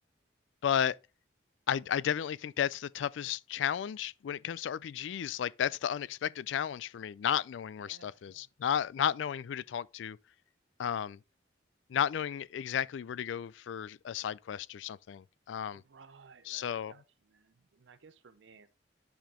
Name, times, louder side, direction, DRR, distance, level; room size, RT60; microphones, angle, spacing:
voice 1, 0.6-1.0 1.7-10.2 10.8-11.2 11.9-15.8 16.5-16.9, left 9 dB, 80° left, 0.3 m, -33 dB
voice 2, 7.8-8.5 15.7-18.7, right 5 dB, 75° right, 0.6 m, -58 dB
10.0 x 5.1 x 3.6 m
head